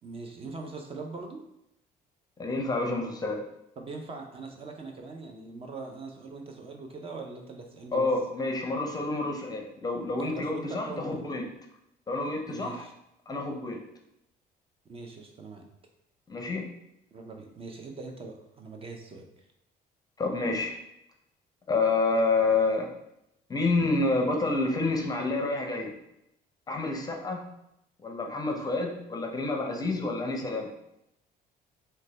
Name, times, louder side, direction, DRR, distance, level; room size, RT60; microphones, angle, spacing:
voice 1, 0.0-1.4 3.8-8.1 10.2-11.2 12.5-12.9 14.9-15.7 17.1-19.3, right 3 dB, 35° right, 3 dB, 0.5 m, -41 dB
voice 2, 2.4-3.4 7.9-11.5 12.1-12.9 13.3-13.8 16.3-16.6 20.2-20.7 21.7-22.9 23.5-25.9 26.7-27.4 28.0-30.7, left 3 dB, 20° left, 2 dB, 0.5 m, -28 dB
3.8 x 2.2 x 3.1 m, 0.82 s
cardioid pair, 110°, 17 cm